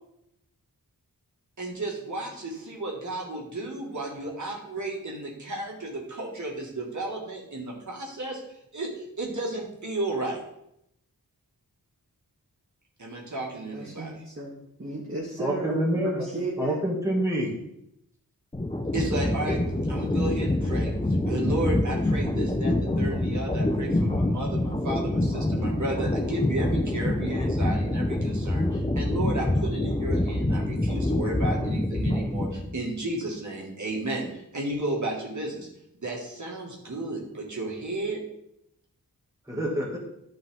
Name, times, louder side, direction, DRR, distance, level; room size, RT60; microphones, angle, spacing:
voice 1, 1.6-8.4 8.7-10.4 13.0-14.1 18.9-19.6 19.9-20.9 21.2-35.7 35.9-38.2, right 2 dB, 55° right, -2 dB, 2.2 m, -33 dB
voice 2, 13.7-14.5 14.8-16.8, right 2 dB, 35° right, -6 dB, 1.8 m, -34 dB
voice 3, 15.4-16.3 16.6-17.5 39.5-40.0, equal, 10° right, -3 dB, 2.3 m, -26 dB
sound 1, 18.5-32.8, left 1 dB, 15° left, 1.0 m, -26 dB
10.5 x 5.3 x 3.8 m, 0.78 s
wide cardioid pair, 70°, 36 cm